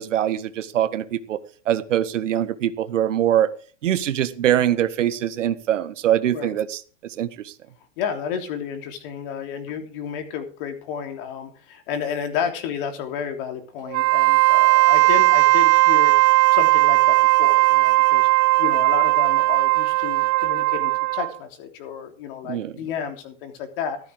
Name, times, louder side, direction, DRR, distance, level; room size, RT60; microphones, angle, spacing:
voice 1, 0.0-1.4 1.6-3.5 3.8-7.5 22.4-22.7, right 11 dB, 75° right, 1.6 m, -23 dB
voice 2, 8.0-16.1 16.5-24.0, left 7 dB, 45° left, 3.3 m, -31 dB
Wind instrument woodwind instrument, 13.9-21.4, right 24 dB, 30° right, 0.8 m, -17 dB
14.0 x 13.5 x 3.7 m
hypercardioid pair, 150°, 37 cm